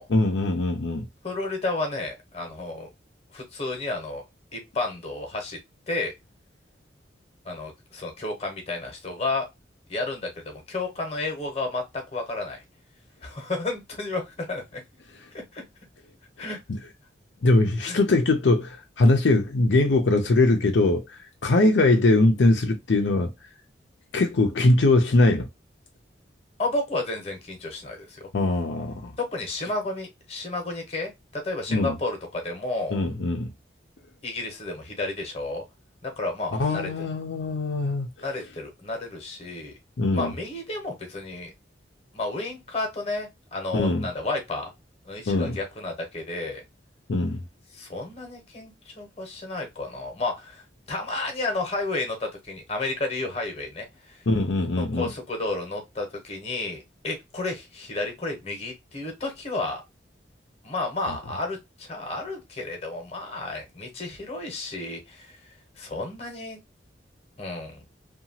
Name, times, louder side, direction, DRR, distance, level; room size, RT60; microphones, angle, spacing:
voice 1, 0.1-1.0 16.4-16.5 17.4-23.3 24.1-25.5 28.3-29.1 31.7-32.0 32.9-33.5 36.5-38.3 40.0-40.3 43.7-44.1 45.3-45.6 47.1-47.4 54.3-55.1 61.1-61.2, left 2 dB, 80° left, 0.5 m, -22 dB
voice 2, 1.2-2.9 3.3-4.2 4.5-5.6 5.9-6.1 7.4-9.5 9.9-12.6 13.2-14.8 15.3-15.6 16.4-16.6 17.8-18.0 26.6-28.3 29.2-33.0 34.2-35.6 36.0-36.9 38.2-39.7 40.1-41.5 42.1-44.7 45.0-46.6 47.7-54.2 54.8-59.8 60.6-65.4 65.8-66.6 67.4-67.7, left 2 dB, 35° left, 0.9 m, -32 dB
2.8 x 2.3 x 2.7 m
head